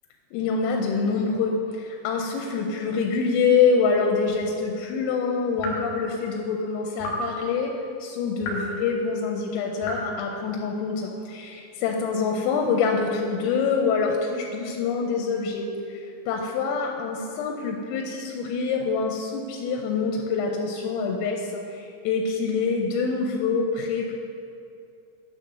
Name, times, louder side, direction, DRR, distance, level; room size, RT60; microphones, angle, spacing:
voice 1, 0.3-7.7 8.0-24.1, left 5 dB, 90° left, 1 dB, 3.3 m, -25 dB
sound 1, 4.3-4.5 5.6-5.9 7.0-7.3 8.4-8.8 9.8-10.1, equal, 65° left, 2.8 m, -32 dB
9.9 x 3.8 x 6.6 m, 2.6 s
omnidirectional pair, 5.9 m